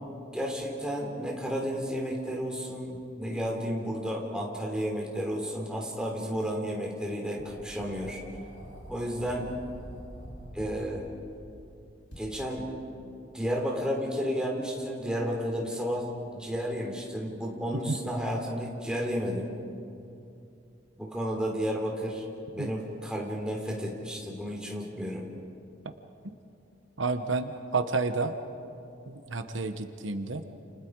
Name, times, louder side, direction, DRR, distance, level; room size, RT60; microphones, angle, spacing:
voice 1, 0.3-8.2 8.9-9.5 10.5-11.1 12.2-12.7 13.3-16.1 16.4-19.5 21.0-22.2 22.5-25.3, equal, 5° right, -1 dB, 3.4 m, -32 dB
sound 1, 7.4-11.5 12.1-12.2, equal, 65° left, 6.4 m, -46 dB
voice 2, 27.0-28.3 29.1-30.4, right 3 dB, 80° right, 8 dB, 1.2 m, -30 dB
29.5 x 29.5 x 4.8 m, 2.6 s
head